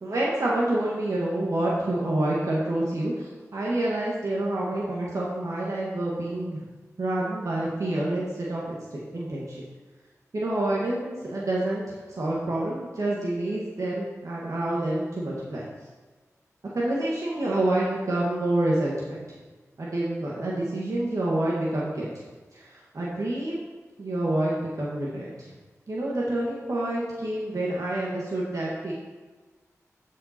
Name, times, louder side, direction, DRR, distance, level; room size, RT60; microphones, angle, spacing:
voice 1, 0.0-6.7 7.0-9.6 10.3-15.7 16.7-19.2 19.8-22.1 22.5-23.6 24.0-25.5 25.9-28.9, right 1 dB, 65° right, -5 dB, 1.7 m, -28 dB
13.0 x 5.5 x 4.4 m, 1.3 s
wide cardioid pair, 65°, 6 cm